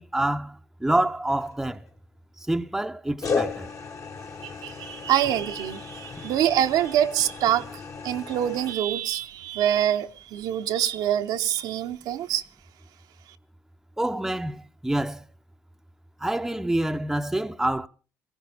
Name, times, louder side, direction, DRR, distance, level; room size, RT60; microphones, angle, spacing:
voice 1, 0.0-1.8 2.4-3.7 14.0-15.2 16.2-17.9, right 1 dB, 5° right, 0.7 m, -27 dB
sound 1, 1.3-1.9 3.2-8.7, left 5 dB, 45° left, 1.5 m, -34 dB
voice 2, 4.4-7.7 8.0-12.4, right 11 dB, 75° right, 0.9 m, -25 dB
20.0 x 16.0 x 3.5 m
supercardioid pair, 75°, 7 cm